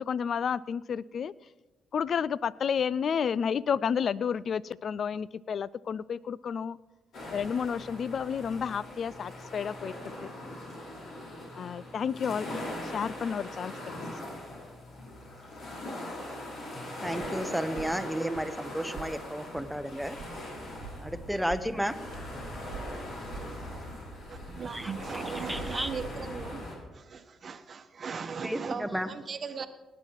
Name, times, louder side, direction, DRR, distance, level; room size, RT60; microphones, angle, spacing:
voice 1, 0.0-1.3 1.9-6.8 7.3-9.9 11.6-13.7 20.6-20.9, left 7 dB, 55° left, 0.3 m, -31 dB
sound 1, 7.1-26.8, left 1 dB, 70° left, 4.8 m, -40 dB
voice 2, 16.6-20.2 21.0-22.0 24.7-25.9 28.4-29.1, equal, ahead, 0.9 m, -33 dB
sound 2, 17.2-17.4 17.8-17.9 18.3-18.5 18.9-19.1 19.6-19.8 20.2-20.4 20.8-21.0 21.3-21.6 22.1-22.3 22.7-23.0 23.3-23.4, right 8 dB, 70° right, 1.1 m, -44 dB
voice 3, 24.3-26.7 26.9-29.7, right 5 dB, 45° right, 1.0 m, -38 dB
18.0 x 8.9 x 4.6 m
cardioid pair, 90°, 0 cm